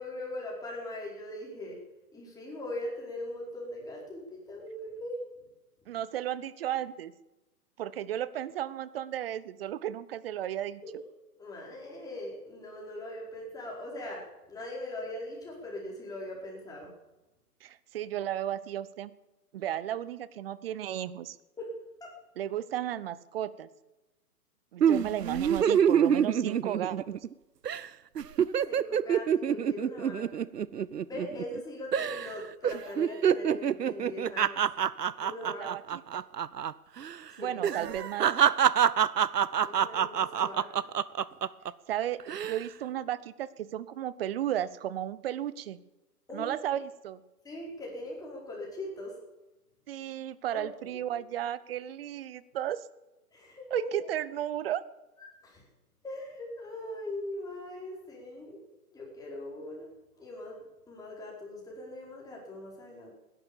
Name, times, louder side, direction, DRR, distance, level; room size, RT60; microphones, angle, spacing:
voice 1, 0.0-1.8 2.1-5.2 10.8-10.9 11.4-14.2 14.5-16.9 21.6-21.7 22.0-22.1 28.6-30.4 31.1-34.7 35.2-35.7 37.3-37.6 39.6-40.9 46.3-46.6 47.4-49.2 50.5-51.1 53.3-54.1 55.2-55.6 56.0-58.6 58.9-59.9 60.2-63.1, left 1 dB, 10° left, -3 dB, 4.9 m, -40 dB
voice 2, 5.9-7.1 7.8-10.8 17.6-19.1 19.5-21.4 22.4-23.7 24.7-27.0 35.6-36.2 37.4-38.3 41.9-45.8 46.3-47.2 49.9-52.8 53.7-54.8, right 11 dB, 40° right, 18 dB, 0.8 m, -34 dB
sound 1, 24.8-27.3 27.6-27.9 28.2-31.6 31.9-32.3 32.6-36.7 37.0-37.1 37.6-41.7 42.2-42.6, right 8 dB, 85° right, 0.8 m, -26 dB
18.0 x 11.0 x 7.1 m, 1.0 s
figure-of-eight pair, 130°, 47 cm